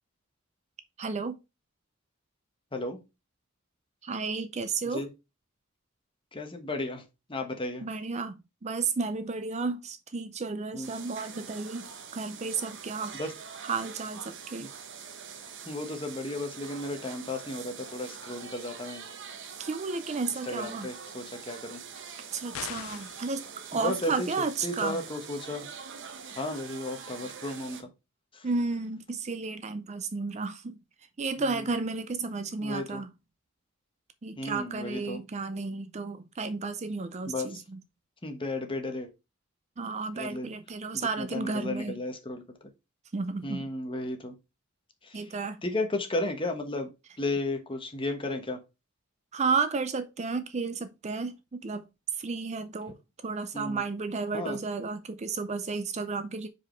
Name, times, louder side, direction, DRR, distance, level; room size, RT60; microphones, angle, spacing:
voice 1, 1.0-1.4 4.0-5.0 7.8-13.2 13.6-14.7 19.6-20.9 22.3-23.4 23.7-25.0 28.4-30.8 31.2-33.1 34.2-37.6 39.8-41.9 43.1-43.7 45.1-45.6 49.3-51.8 52.2-52.9 53.2-56.5, right 4 dB, 35° right, 0.5 m, -32 dB
voice 2, 6.3-7.0 7.3-7.9 10.7-10.9 13.1-13.3 14.6-14.7 15.6-19.0 20.4-21.8 23.7-24.3 24.6-25.7 26.4-27.9 28.3-28.4 31.4-31.7 32.6-33.0 34.4-35.2 37.3-37.6 38.2-39.1 40.1-40.5 40.9-42.6 43.4-44.4 45.0-45.3 45.6-46.9 47.2-48.6 53.5-53.8 54.3-54.6, left 2 dB, 25° left, 1.2 m, -34 dB
sound 1, 10.8-27.8, right 6 dB, 65° right, 1.0 m, -44 dB
sound 2, 22.5-23.3, left 11 dB, 75° left, 0.4 m, -39 dB
5.0 x 4.8 x 4.5 m
head